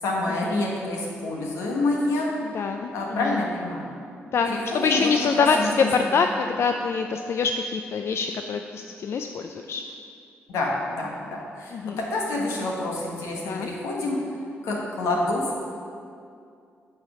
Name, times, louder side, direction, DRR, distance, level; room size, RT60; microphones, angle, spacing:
voice 1, 0.0-2.4 2.9-3.9 4.4-6.1 10.5-14.3 14.6-15.6, left 2 dB, 85° left, -2 dB, 1.3 m, -27 dB
voice 2, 2.4-3.4 4.3-9.8 11.7-12.0 13.5-13.7, left 5 dB, 60° left, 5 dB, 0.4 m, -25 dB
9.0 x 3.4 x 6.1 m, 2.4 s
supercardioid pair, 55°, 5 cm